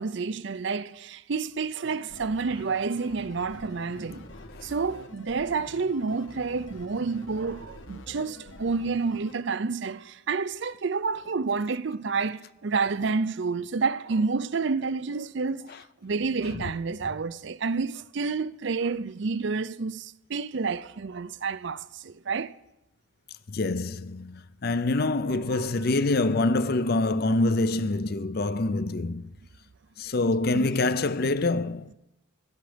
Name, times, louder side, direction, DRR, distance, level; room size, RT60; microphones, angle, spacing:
voice 1, 0.0-4.2 4.6-15.7 16.0-22.5 25.3-25.8 30.5-30.7, right 4 dB, 55° right, 0.5 m, -29 dB
sound 1, 1.8-9.3, left 1 dB, 65° left, 1.4 m, -46 dB
voice 2, 23.5-29.3 30.0-31.9, left 2 dB, 45° left, 0.5 m, -25 dB
16.5 x 11.5 x 5.1 m
head